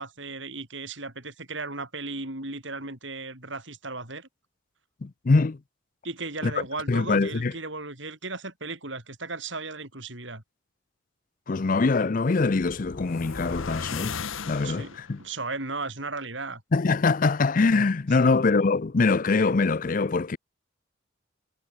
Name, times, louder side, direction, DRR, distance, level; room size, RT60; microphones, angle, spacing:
voice 1, 0.0-4.3 6.0-10.4 14.6-16.6 18.2-18.3, right 3 dB, 65° right, 7.8 m, -36 dB
voice 2, 5.0-5.6 6.4-6.5 6.9-7.5 11.5-14.2 14.5-15.2 16.7-20.4, left 3 dB, 40° left, 0.5 m, -23 dB
sound 1, 12.5-15.2, left 5 dB, 85° left, 1.1 m, -36 dB
head